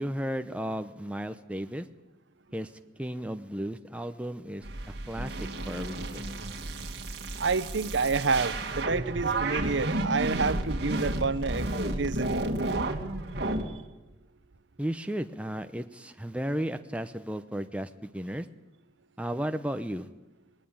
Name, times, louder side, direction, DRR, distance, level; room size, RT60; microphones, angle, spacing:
voice 1, 0.0-1.9 2.5-2.7 3.0-6.3 14.8-18.5 19.2-20.1, equal, 5° right, 7 dB, 0.8 m, -34 dB
sound 1, 4.6-13.6, right 2 dB, 60° right, 2.2 m, -32 dB
voice 2, 7.4-12.5, right 4 dB, 75° right, 14 dB, 0.9 m, -29 dB
20.5 x 18.5 x 8.8 m, 1.0 s
head